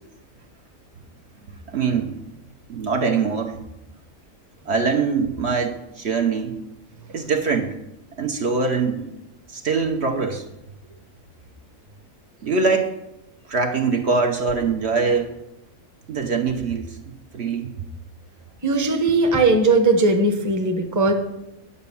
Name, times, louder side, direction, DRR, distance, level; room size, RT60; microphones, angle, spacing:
voice 1, 1.7-2.2 2.7-3.6 4.7-6.5 7.1-7.8 8.2-9.1 9.5-10.4 12.4-12.9 13.5-15.3 16.1-17.7, right 4 dB, 55° right, 3 dB, 1.1 m, -23 dB
voice 2, 18.6-21.1, right 3 dB, 15° right, 5 dB, 0.9 m, -18 dB
9.8 x 5.8 x 7.0 m, 0.88 s
omnidirectional pair, 1.4 m